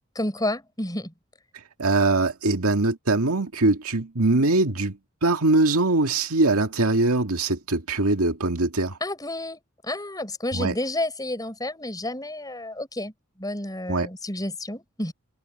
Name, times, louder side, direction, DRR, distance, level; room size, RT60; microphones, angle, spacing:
voice 1, 0.2-1.1 9.0-13.1 13.4-15.1, left 1 dB, 15° left, 7.8 m, -30 dB
voice 2, 1.8-9.0 10.5-10.7 13.9-14.1, right 2 dB, 85° right, 2.1 m, -22 dB
head